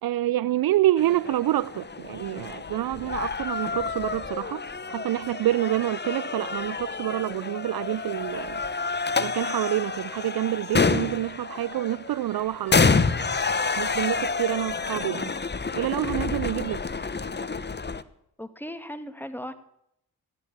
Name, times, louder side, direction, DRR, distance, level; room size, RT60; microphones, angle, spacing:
voice 1, 0.0-4.6 4.9-8.6 9.2-13.0 13.8-15.3 15.7-16.8, right 14 dB, 65° right, 0.5 m, -27 dB
sound 1, 1.0-18.0, left 4 dB, 25° left, 1.1 m, -28 dB
voice 2, 18.4-19.5, equal, 5° left, 2.2 m, -37 dB
15.0 x 11.0 x 7.2 m
supercardioid pair, 50°, 38 cm